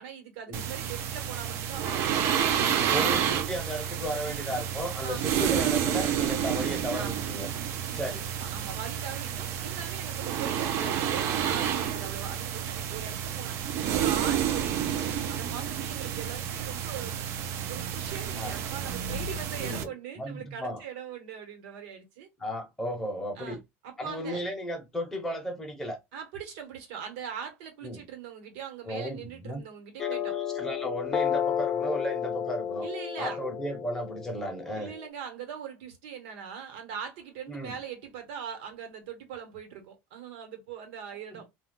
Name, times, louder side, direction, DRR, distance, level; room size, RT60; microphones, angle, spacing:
voice 1, 0.0-3.4 4.3-4.6 5.0-5.7 6.9-7.3 8.4-13.6 13.9-17.1 17.7-22.3 23.4-23.6 23.8-24.4 26.1-30.4 32.8-33.4 34.8-41.5, right 8 dB, 80° right, 1.1 m, -41 dB
sound 1, 0.5-19.8, right 9 dB, 45° right, 0.4 m, -30 dB
voice 2, 2.5-7.5 7.9-8.3 18.4-18.6 19.6-19.9 20.2-20.8 22.4-23.6 24.0-26.0 27.8-28.0 28.8-29.6 30.0-32.9 33.2-34.9 37.5-37.8 41.3-41.4, equal, 5° left, 0.7 m, -35 dB
sound 2, 30.0-35.1, left 8 dB, 30° left, 0.3 m, -32 dB
2.3 x 2.2 x 3.7 m
cardioid pair, 160°, 6 cm